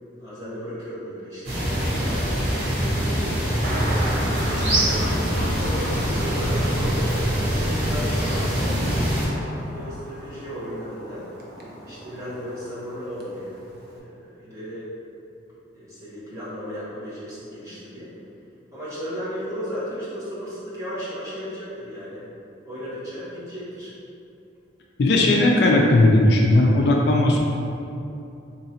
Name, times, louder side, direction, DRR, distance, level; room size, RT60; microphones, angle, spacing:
voice 1, 0.2-3.6 4.4-8.8 9.5-11.3 11.9-14.8 15.7-18.1 18.7-22.2 22.6-23.9, equal, 15° right, -11 dB, 1.1 m, -35 dB
sound 1, 1.4-9.3, equal, 90° right, 1.3 m, -23 dB
Thunder, 1.7-14.0, right 1 dB, 55° right, 0.5 m, -37 dB
voice 2, 25.0-27.4, left 2 dB, 60° left, -1 dB, 0.3 m, -17 dB
3.8 x 3.0 x 2.8 m, 2.7 s
head